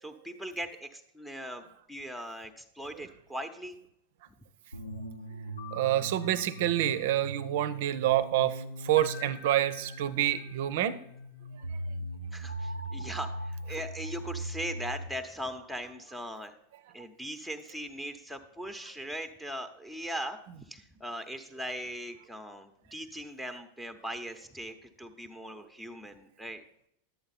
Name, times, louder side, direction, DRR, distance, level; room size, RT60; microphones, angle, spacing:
voice 1, 0.0-3.8 12.3-16.6 16.9-26.6, equal, 5° left, 7 dB, 0.9 m, -40 dB
sound 1, 4.7-15.1, right 1 dB, 80° left, 0.9 m, -40 dB
voice 2, 5.7-11.0, right 13 dB, 50° right, 15 dB, 0.7 m, -27 dB
11.5 x 8.7 x 4.2 m, 0.73 s
figure-of-eight pair, 90°, 0 cm